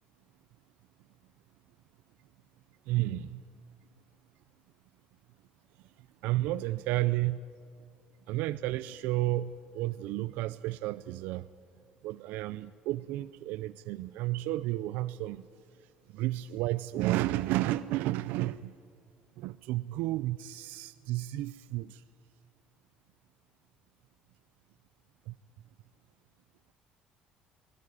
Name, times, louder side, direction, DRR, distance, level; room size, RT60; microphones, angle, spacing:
voice 1, 2.9-3.4 6.2-7.4 8.3-11.5 12.0-15.5 16.1-18.7 19.4-22.0 25.3-25.4, right 16 dB, 80° right, 0.5 m, -32 dB
19.5 x 18.5 x 9.8 m
cardioid pair, 145°, 3 cm